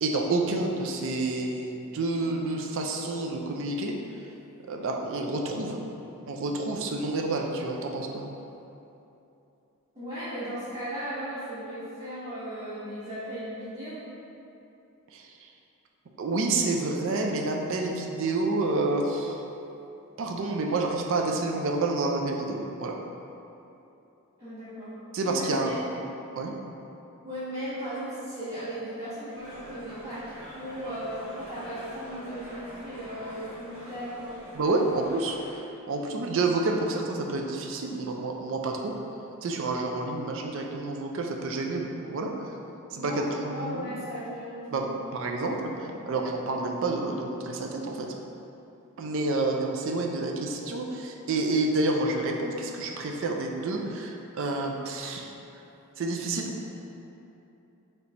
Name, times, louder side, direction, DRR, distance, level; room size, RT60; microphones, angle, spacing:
voice 1, 0.0-3.9 4.7-5.8 6.3-8.3 15.1-15.3 16.2-19.4 20.2-23.0 25.1-25.8 26.4-26.5 34.5-35.4 35.9-38.9 39.4-42.3 42.9-44.0 44.7-44.9 45.1-48.1 49.0-55.3 56.0-56.7, right 2 dB, 60° right, 2 dB, 0.4 m, -29 dB
voice 2, 9.9-14.1 24.4-25.0 25.3-25.7 27.2-34.4 42.9-44.9, equal, 25° right, -14 dB, 0.8 m, -36 dB
sound 1, 29.3-35.6, equal, 90° right, 1.2 m, -44 dB
3.3 x 2.9 x 4.0 m, 2.9 s
head